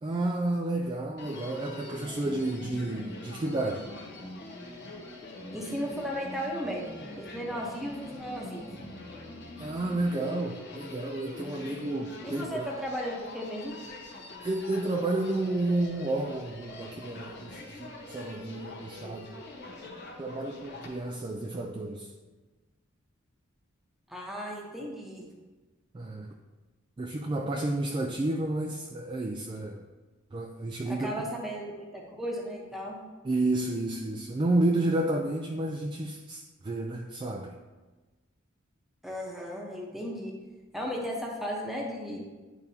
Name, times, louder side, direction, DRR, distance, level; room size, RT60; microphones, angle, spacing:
voice 1, 0.0-3.9 9.6-12.7 14.4-19.4 20.2-22.1 25.9-26.3 27.0-29.8 30.3-31.3 33.2-37.6, right 2 dB, 25° right, 1 dB, 0.3 m, -31 dB
Human voice, 1.2-21.0, left 2 dB, 55° left, 1.1 m, -44 dB
voice 2, 5.5-8.7 12.2-13.8 24.1-25.3 30.8-33.0 39.0-40.3 40.7-42.2, equal, ahead, -2 dB, 1.0 m, -35 dB
10.5 x 4.0 x 2.8 m, 1.2 s
head